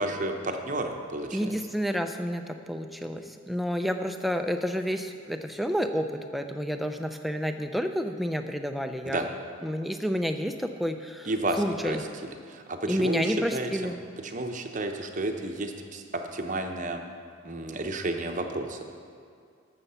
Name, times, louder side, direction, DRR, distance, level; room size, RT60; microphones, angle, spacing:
voice 1, 0.0-1.5 9.0-9.3 11.2-12.0 12.5-13.9 14.2-17.0 17.4-18.8, right 2 dB, 35° right, 5 dB, 0.8 m, -31 dB
voice 2, 1.3-9.2 9.6-11.3 11.6-12.0 12.9-14.0, equal, ahead, 6 dB, 0.4 m, -30 dB
12.5 x 7.0 x 5.6 m, 2.3 s
head